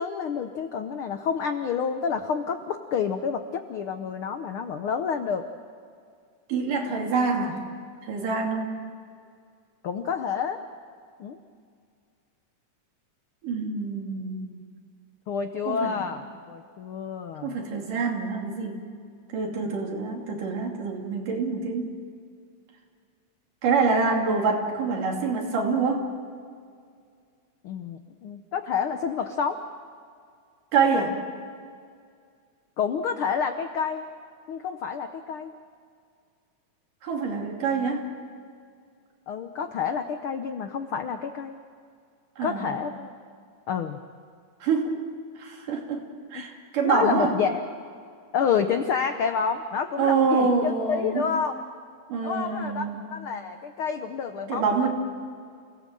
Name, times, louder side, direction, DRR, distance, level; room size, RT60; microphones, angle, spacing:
voice 1, 0.0-5.5 9.8-10.6 11.2-11.4 15.3-17.6 27.6-29.6 32.8-34.0 34.5-35.5 39.3-41.6 42.4-43.1 43.7-44.0 46.3-46.4 46.8-47.6 48.3-51.5 52.2-52.8 53.1-54.9, left 6 dB, 80° left, 7 dB, 1.2 m, -29 dB
voice 2, 6.5-7.6 8.0-8.8 13.4-14.6 15.7-15.9 17.4-18.8 19.3-21.9 23.6-26.1 30.7-31.2 37.0-38.0 42.4-42.7 44.6-45.0 45.4-46.0 46.3-47.3 50.0-51.3 52.1-53.0 54.5-54.9, right 4 dB, 85° right, 1 dB, 4.3 m, -26 dB
28.5 x 17.5 x 7.6 m, 2.2 s
omnidirectional pair, 3.6 m